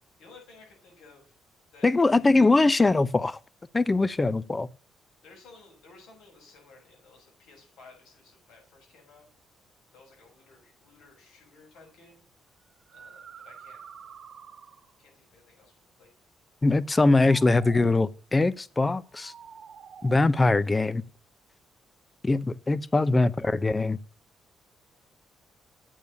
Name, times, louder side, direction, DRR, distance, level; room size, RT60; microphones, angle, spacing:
voice 1, 0.2-1.4 1.7-2.2 5.2-9.3 9.9-12.2 12.9-13.8 15.0-16.1 22.9-23.7, left 3 dB, 85° left, 6.7 m, -55 dB
voice 2, 1.8-3.4 3.7-4.7 16.6-19.3 20.0-21.0 22.2-24.0, left 3 dB, 20° left, 0.6 m, -22 dB
sound 1, 11.7-11.9 12.7-15.0 16.9-18.1 19.1-20.2, right 7 dB, 55° right, 1.1 m, -48 dB
8.7 x 6.9 x 6.9 m
cardioid pair, 90°, 0 cm